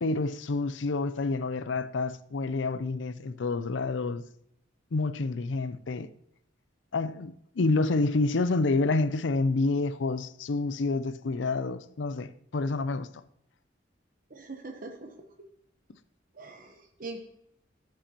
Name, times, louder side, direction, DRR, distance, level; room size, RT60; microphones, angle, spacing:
voice 1, 0.0-4.2 4.9-6.1 6.9-13.1, left 3 dB, 90° left, 0.5 m, -28 dB
voice 2, 14.3-15.1 16.3-17.2, right 3 dB, 50° right, 1.0 m, -42 dB
13.0 x 7.6 x 3.0 m
head